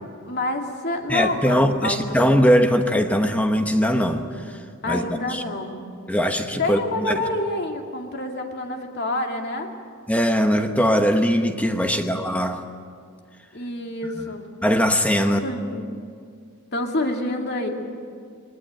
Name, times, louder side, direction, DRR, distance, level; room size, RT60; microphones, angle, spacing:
voice 1, 0.3-2.2 4.8-5.9 6.6-9.7 11.8-12.1 13.5-14.4 15.2-15.9 16.7-17.7, left 2 dB, 50° left, 2 dB, 2.3 m, -28 dB
voice 2, 1.1-4.6 4.9-5.4 6.1-7.1 10.1-12.6 14.6-15.4, equal, 5° left, 6 dB, 1.0 m, -21 dB
22.0 x 18.5 x 8.8 m, 2.2 s
head